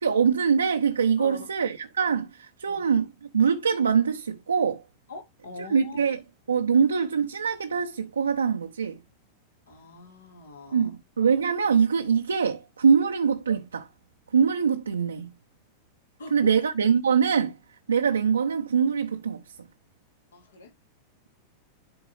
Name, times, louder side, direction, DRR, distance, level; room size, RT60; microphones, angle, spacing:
voice 1, 0.0-4.8 5.6-6.2 6.5-9.0 10.7-13.9 14.3-15.3 16.3-17.6 17.9-19.4, right 6 dB, 75° right, 0.8 m, -23 dB
voice 2, 1.2-1.5 2.7-2.8 5.1-6.0 9.7-10.9 16.2-16.6 20.3-20.7, left 3 dB, 65° left, 4.1 m, -43 dB
11.5 x 4.8 x 3.2 m
figure-of-eight pair, 90°, 0 cm